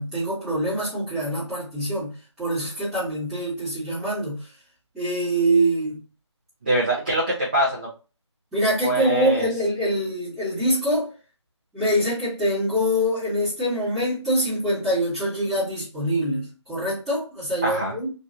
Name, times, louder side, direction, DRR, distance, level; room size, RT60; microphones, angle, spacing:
voice 1, 0.0-2.1 2.4-4.4 4.9-6.0 8.5-11.1 11.7-18.1, equal, 5° right, 1.3 m, -24 dB
voice 2, 6.6-7.9 8.8-9.5 17.6-17.9, right 1 dB, 20° right, 0.6 m, -23 dB
3.1 x 2.8 x 2.6 m
figure-of-eight pair, 165°, 15 cm